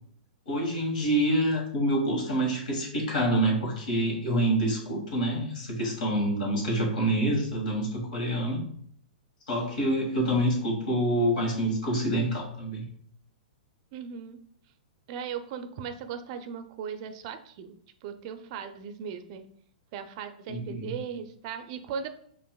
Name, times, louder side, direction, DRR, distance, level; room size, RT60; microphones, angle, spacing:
voice 1, 0.5-8.6 9.5-12.8 20.5-20.9, right 1 dB, 65° left, 0 dB, 1.5 m, -27 dB
voice 2, 13.9-14.4 15.1-17.8 18.0-19.5 19.9-22.1, right 7 dB, 45° right, 8 dB, 0.4 m, -38 dB
5.5 x 2.5 x 2.3 m, 0.63 s
hypercardioid pair, 130°, 5 cm